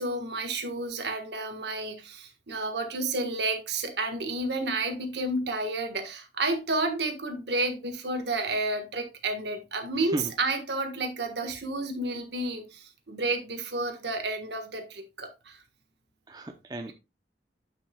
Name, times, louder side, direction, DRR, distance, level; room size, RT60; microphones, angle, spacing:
voice 1, 0.0-15.6, right 2 dB, 80° right, 1.6 m, -31 dB
voice 2, 9.9-10.3 16.3-16.9, right 1 dB, 20° right, 0.7 m, -35 dB
10.5 x 5.7 x 2.3 m
head